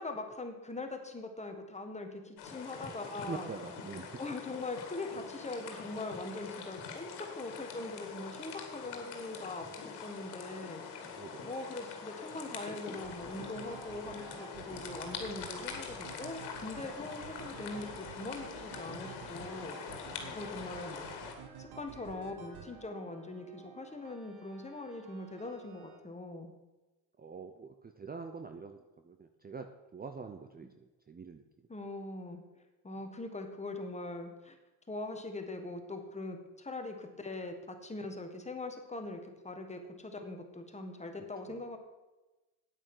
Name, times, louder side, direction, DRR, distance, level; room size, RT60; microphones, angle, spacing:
voice 1, 0.0-3.5 4.2-11.1 11.4-19.8 20.3-21.1 21.6-26.5 31.7-32.4 32.8-34.5 34.9-41.8, left 2 dB, 15° left, 5 dB, 1.7 m, -42 dB
sound 1, 2.4-21.3, left 6 dB, 90° left, 2.0 m, -44 dB
voice 2, 3.3-4.2 11.0-11.5 20.1-20.4 27.2-31.4 32.9-33.0 41.5-41.6, right 5 dB, 25° right, 7 dB, 0.7 m, -45 dB
sound 2, 12.9-26.0, right 7 dB, 80° right, 1.6 m, -51 dB
9.2 x 8.9 x 6.2 m, 1.1 s
cardioid pair, 105°, 38 cm